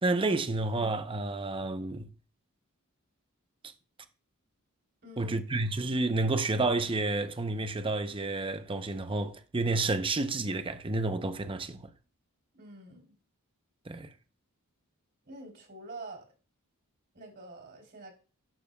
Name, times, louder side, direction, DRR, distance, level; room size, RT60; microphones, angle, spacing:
voice 1, 0.0-2.1 5.2-11.9 13.9-14.1, right 2 dB, 25° right, 0.6 m, -30 dB
voice 2, 5.0-5.4 12.6-13.2 15.2-16.2 17.1-18.1, right 2 dB, 50° right, 3.3 m, -46 dB
11.5 x 6.8 x 2.2 m
head